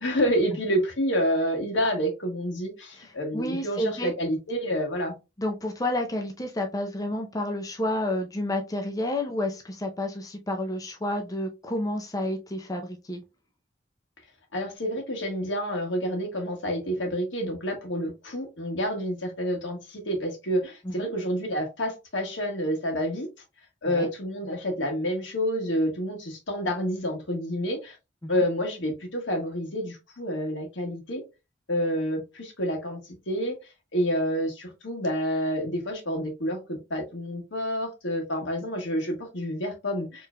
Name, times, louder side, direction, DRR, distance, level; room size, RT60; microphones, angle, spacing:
voice 1, 0.0-5.1 14.5-23.3 23.8-28.0 28.3-31.2 31.7-33.0 33.3-33.6 33.9-40.3, equal, 75° left, 3 dB, 1.4 m, -28 dB
voice 2, 3.0-4.1 5.4-13.2 20.8-21.1 23.8-24.1 28.2-28.4, left 1 dB, 20° left, 3 dB, 0.5 m, -30 dB
4.7 x 3.1 x 2.2 m, 0.26 s
head